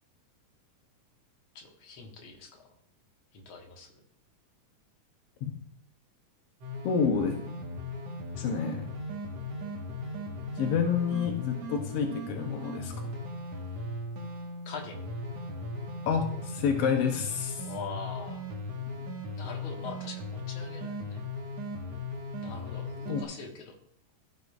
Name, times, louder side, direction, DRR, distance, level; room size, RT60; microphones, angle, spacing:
voice 1, 1.5-2.6 3.3-3.9 13.5-13.6 14.6-15.0 17.6-18.4 19.3-21.2 22.4-23.7, left 4 dB, 50° left, 1 dB, 1.8 m, -43 dB
sound 1, 6.6-23.2, left 2 dB, 60° right, 2.2 m, -38 dB
voice 2, 6.8-7.4 8.4-8.9 10.6-13.1 16.1-17.7 23.1-23.2, left 6 dB, 80° left, 4 dB, 1.4 m, -29 dB
15.0 x 6.7 x 2.4 m, 0.69 s
omnidirectional pair, 3.6 m